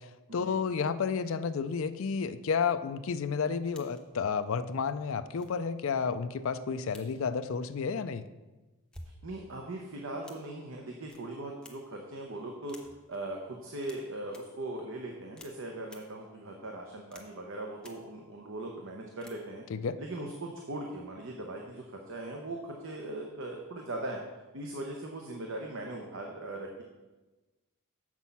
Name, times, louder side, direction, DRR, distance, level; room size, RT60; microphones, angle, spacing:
voice 1, 0.0-8.2 19.7-20.0, left 6 dB, 60° left, 11 dB, 0.4 m, -31 dB
sound 1, 3.7-4.2 4.8-4.9 5.4-5.6 6.9-7.2 8.7-9.3 10.2-10.5 11.1-11.2 11.6-12.0 12.7-13.2 13.8-14.0 14.3-14.4 15.4-15.5 15.8-16.0 17.1-17.5 17.8-17.9 19.2-19.3, left 1 dB, 5° left, 0.7 m, -51 dB
voice 2, 9.2-12.8 13.1-19.6 20.0-24.2 24.5-26.8, right 2 dB, 60° right, 1 dB, 0.8 m, -39 dB
7.2 x 6.1 x 5.5 m, 1.2 s
head